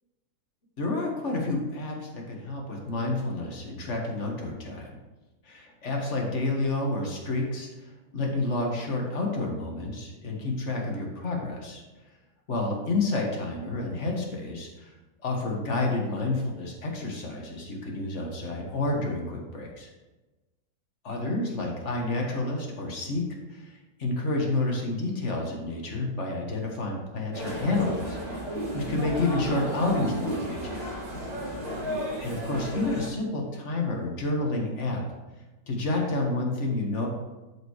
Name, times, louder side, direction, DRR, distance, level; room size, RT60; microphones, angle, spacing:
voice 1, 0.8-4.9 5.4-11.8 12.5-14.9 15.2-19.9 21.0-28.2 28.7-30.8 32.2-35.0 35.7-37.1, left 2 dB, 40° left, 0 dB, 1.7 m, -29 dB
sound 1, 27.3-33.1, equal, 70° right, 2.6 m, -33 dB
13.0 x 5.1 x 3.2 m, 1.1 s
omnidirectional pair, 2.1 m